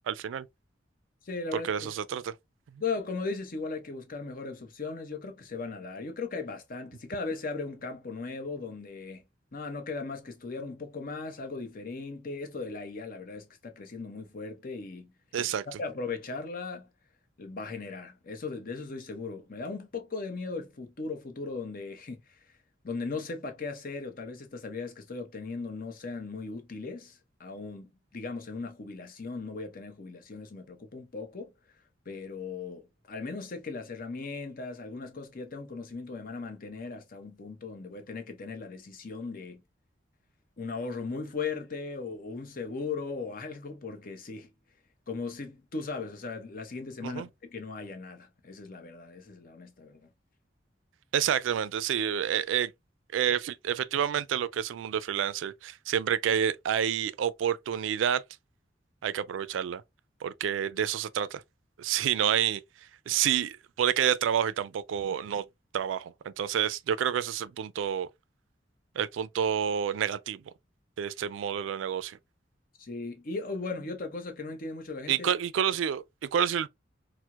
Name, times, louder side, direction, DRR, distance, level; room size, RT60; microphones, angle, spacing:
voice 1, 0.1-0.5 1.5-2.3 15.3-15.8 47.0-47.3 51.1-52.7 53.1-58.2 59.0-59.8 60.2-61.4 61.8-62.6 63.1-65.4 65.7-68.1 69.0-70.4 71.0-72.2 75.1-76.7, right 9 dB, 80° right, 0.3 m, -29 dB
voice 2, 1.2-1.9 2.8-9.2 9.5-15.5 15.8-16.9 17.4-22.4 22.8-31.5 32.1-39.6 40.6-44.5 45.1-50.1 72.8-75.3, left 4 dB, 50° left, 0.8 m, -38 dB
4.4 x 2.1 x 2.3 m
head